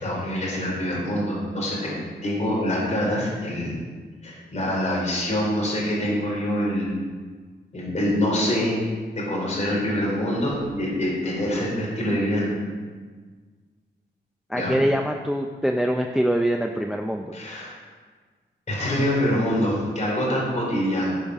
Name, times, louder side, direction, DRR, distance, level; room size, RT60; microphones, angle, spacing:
voice 1, 0.0-3.8 4.2-7.0 7.7-8.8 9.1-12.5 14.5-14.8 17.3-17.8 18.7-21.2, equal, 40° left, -4 dB, 4.2 m, -25 dB
voice 2, 14.5-17.3, equal, 5° right, 4 dB, 0.5 m, -24 dB
15.5 x 5.7 x 6.2 m, 1.5 s
wide cardioid pair, 140°, 19 cm